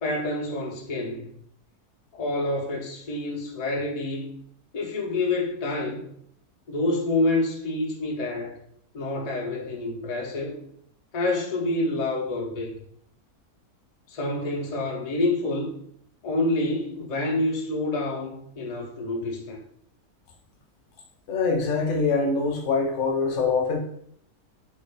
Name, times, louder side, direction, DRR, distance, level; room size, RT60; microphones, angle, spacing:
voice 1, 0.0-1.3 2.1-4.3 4.7-6.1 6.7-8.6 8.9-10.6 11.1-12.7 14.1-15.7 16.2-19.6, left 2 dB, 85° left, -1 dB, 0.3 m, -27 dB
voice 2, 21.3-23.8, left 4 dB, 60° left, 2 dB, 0.9 m, -24 dB
3.6 x 2.3 x 3.3 m, 0.67 s
omnidirectional pair, 1.6 m